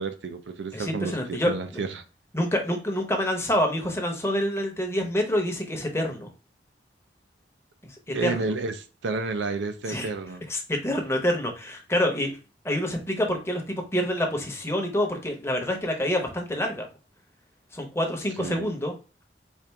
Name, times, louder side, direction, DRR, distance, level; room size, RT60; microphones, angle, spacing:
voice 1, 0.0-2.0 8.1-10.4 18.4-18.7, right 3 dB, 80° right, 0.5 m, -31 dB
voice 2, 0.7-1.8 2.3-6.3 7.8-7.9 8.2-8.3 9.9-10.1 10.5-12.3 12.6-16.9 17.7-18.9, equal, 15° left, 0.8 m, -27 dB
4.3 x 2.4 x 3.4 m
head